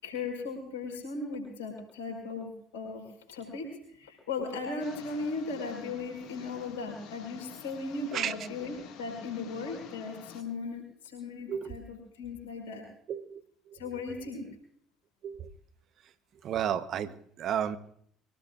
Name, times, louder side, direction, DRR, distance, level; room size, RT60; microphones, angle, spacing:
voice 1, 0.0-12.8 13.7-14.5, left 3 dB, 85° left, -1 dB, 5.1 m, -37 dB
sound 1, 4.8-10.4, left 8 dB, 65° left, 2.0 m, -49 dB
voice 2, 13.1-13.4 13.7-13.8 15.2-15.5 16.4-17.8, right 9 dB, 55° right, 13 dB, 1.0 m, -32 dB
24.0 x 18.0 x 2.5 m, 0.67 s
hypercardioid pair, 60°, 0 cm